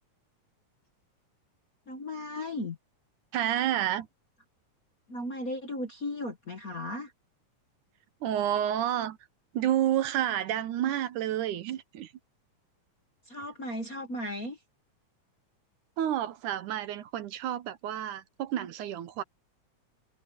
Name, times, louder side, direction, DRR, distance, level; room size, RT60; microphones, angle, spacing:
voice 1, 1.9-2.8 5.1-7.1 13.3-14.6, left 1 dB, 40° left, 1.4 m, -36 dB
voice 2, 3.3-4.1 8.2-9.2 9.5-12.1 16.0-19.2, right 11 dB, 75° right, 2.5 m, -30 dB
omnidirectional pair, 3.7 m